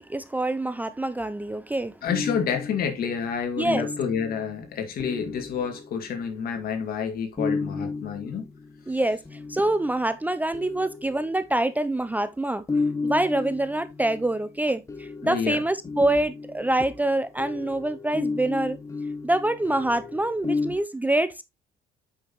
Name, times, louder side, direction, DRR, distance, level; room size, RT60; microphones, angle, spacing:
voice 1, 0.0-2.0 3.6-3.9 8.9-12.6 13.0-18.8 19.2-21.4, right 1 dB, 10° right, 0.5 m, -25 dB
voice 2, 2.0-8.4 15.2-15.6, left 7 dB, 60° left, 2.2 m, -29 dB
sound 1, 2.1-6.6 7.4-10.0 10.5-12.0 12.7-20.8, left 4 dB, 20° left, 0.9 m, -33 dB
8.3 x 5.6 x 3.0 m
cardioid pair, 110°, 17 cm